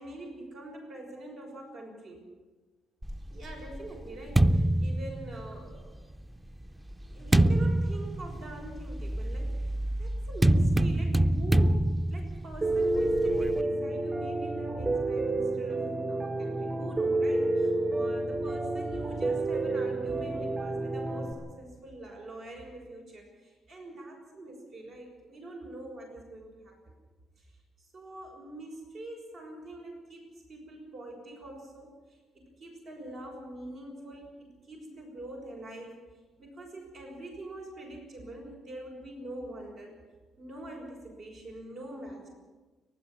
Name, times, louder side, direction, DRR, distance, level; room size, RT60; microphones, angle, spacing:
voice 1, 0.0-2.3 3.3-5.9 7.1-27.0 27.4-36.0 36.4-40.0 40.4-42.3, right 1 dB, 65° right, 0 dB, 6.0 m, -44 dB
sound 1, 3.0-5.8 6.6-13.6, right 1 dB, 10° right, 0.5 m, -26 dB
Piano, 12.6-21.3, right 2 dB, 30° right, 4.7 m, -29 dB
30.0 x 12.0 x 7.5 m, 1.3 s
cardioid pair, 90°, 0 cm